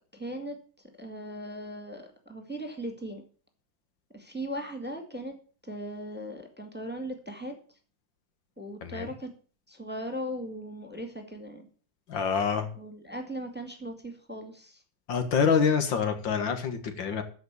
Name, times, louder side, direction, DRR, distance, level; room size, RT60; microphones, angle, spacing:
voice 1, 0.1-0.6 1.0-3.2 4.1-5.4 5.6-7.6 8.6-9.3 9.7-11.7 12.8-14.8, equal, 5° right, 4 dB, 1.8 m, -38 dB
voice 2, 12.1-12.7 15.1-17.2, left 6 dB, 80° left, 7 dB, 2.3 m, -26 dB
13.5 x 5.2 x 8.2 m, 0.41 s
omnidirectional pair, 2.0 m